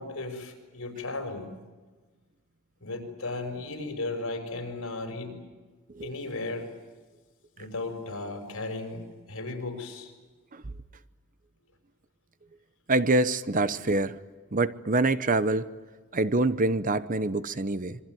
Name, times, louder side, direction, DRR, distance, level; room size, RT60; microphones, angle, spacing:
voice 1, 0.0-1.6 2.8-5.4 6.0-6.7 7.6-10.1 13.7-13.8, left 2 dB, 70° left, 5 dB, 6.0 m, -35 dB
voice 2, 12.9-14.2 14.5-15.7 16.1-18.0, right 2 dB, 40° right, 13 dB, 0.8 m, -25 dB
26.5 x 24.0 x 9.3 m, 1.3 s
head